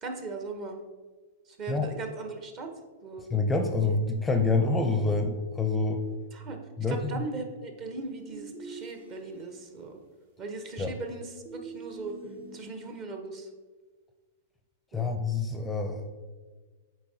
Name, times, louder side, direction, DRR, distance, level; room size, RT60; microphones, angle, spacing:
voice 1, 0.0-0.8 1.4-2.7 3.0-3.3 6.3-6.6 6.9-10.0 10.4-12.1 12.5-13.5 14.9-15.2, right 3 dB, 35° right, 5 dB, 0.9 m, -38 dB
voice 2, 3.3-6.0 6.8-7.2 10.8-10.9 14.9-16.1, left 3 dB, 10° left, 5 dB, 0.5 m, -27 dB
sound 1, 8.3-9.6 10.8-13.0, right 4 dB, 60° right, 1.1 m, -45 dB
8.4 x 4.1 x 2.7 m, 1.4 s
hypercardioid pair, 110°, 0 cm